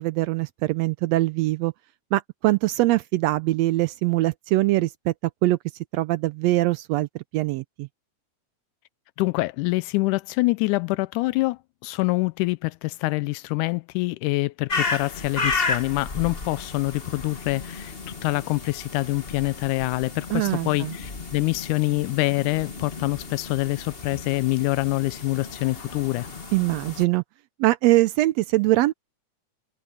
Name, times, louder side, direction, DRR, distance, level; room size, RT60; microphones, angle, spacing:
voice 1, 0.0-1.7 2.1-5.1 5.4-5.6 5.9-7.9 20.3-20.9 26.5-27.2 27.6-28.9, right 18 dB, 90° right, 1.5 m, -22 dB
voice 2, 9.2-17.9 18.2-26.3, left 22 dB, 85° left, 2.0 m, -25 dB
sound 1, 14.7-27.0, left 4 dB, 40° left, 0.8 m, -33 dB
omnidirectional pair, 3.5 m